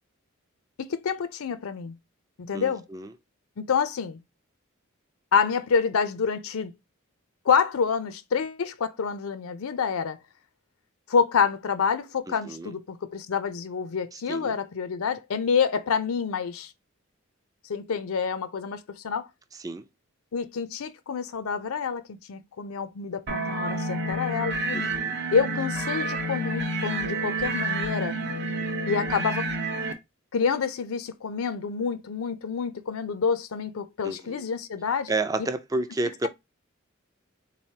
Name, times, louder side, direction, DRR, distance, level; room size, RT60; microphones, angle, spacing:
voice 1, 0.8-1.9 2.4-2.8 3.6-4.2 5.3-6.7 7.5-10.2 11.1-16.7 17.7-19.3 20.3-24.9 25.3-28.2 28.8-29.5 30.3-35.1, left 6 dB, 80° left, 0.5 m, -27 dB
voice 2, 2.5-3.1 12.3-12.7 14.1-14.5 19.5-19.8 24.7-25.1 34.0-34.4 35.1-36.3, right 2 dB, 15° right, 0.4 m, -31 dB
sound 1, 23.3-29.9, right 2 dB, 55° right, 0.7 m, -29 dB
3.8 x 3.2 x 2.7 m
head